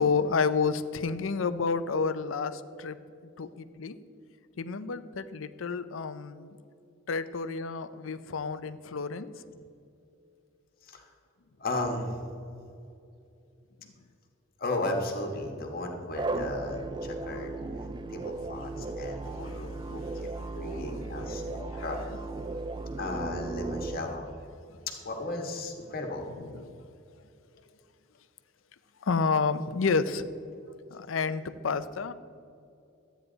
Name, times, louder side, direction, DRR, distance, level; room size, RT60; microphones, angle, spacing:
voice 1, 0.0-3.0 3.4-4.0 4.6-6.6 7.1-9.3 18.8-19.6 19.9-20.4 20.7-22.1 24.7-24.8 26.4-26.8 29.0-30.3 30.9-32.1, left 5 dB, 80° left, 13 dB, 0.5 m, -31 dB
voice 2, 11.6-12.1 14.6-17.6 18.1-20.3 20.5-22.0 23.0-24.3 24.9-26.3, left 2 dB, 50° left, 2 dB, 1.4 m, -35 dB
sound 1, 16.2-24.0, right 2 dB, 20° right, 0.3 m, -36 dB
13.0 x 9.2 x 4.0 m, 2.6 s
head